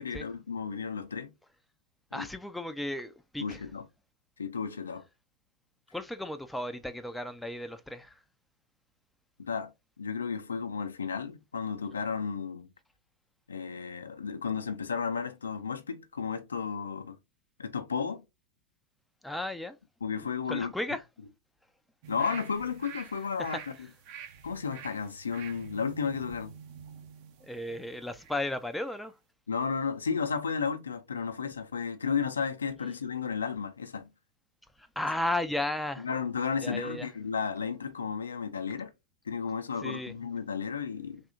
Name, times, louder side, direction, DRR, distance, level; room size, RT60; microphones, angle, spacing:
voice 1, 0.0-1.3 2.1-2.3 3.4-3.9 4.4-5.0 9.4-9.7 10.0-12.7 13.5-17.2 17.6-18.2 20.0-20.7 22.1-23.6 24.4-26.6 29.5-34.1 36.0-38.9 39.3-41.2, left 6 dB, 75° left, 0.5 m, -33 dB
voice 2, 2.1-3.6 5.9-8.1 19.2-19.8 20.5-21.0 27.5-29.1 34.8-36.1 36.6-37.1 39.8-40.1, left 1 dB, 5° left, 0.4 m, -34 dB
sound 1, 22.0-28.5 28.8-29.0, right 7 dB, 45° right, 0.6 m, -47 dB
3.5 x 2.7 x 2.5 m
figure-of-eight pair, 90°, 0 cm